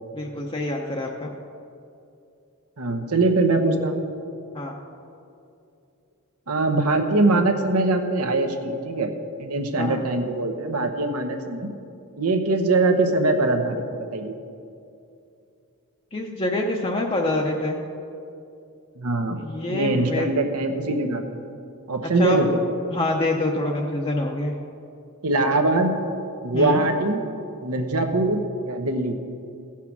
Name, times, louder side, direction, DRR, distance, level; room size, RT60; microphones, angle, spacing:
voice 1, 0.1-1.3 4.5-4.8 9.8-10.0 16.1-17.8 19.4-20.3 22.0-22.4 22.9-24.5 26.5-26.8, left 2 dB, 25° left, 0 dB, 0.6 m, -26 dB
voice 2, 2.8-4.0 6.5-9.1 9.4-11.7 12.2-13.8 14.1-14.3 19.0-19.4 19.7-21.4 21.9-22.6 25.2-26.0 26.4-27.2 27.6-29.1, right 2 dB, 90° right, 5 dB, 1.1 m, -22 dB
16.0 x 5.9 x 5.9 m, 2.6 s
head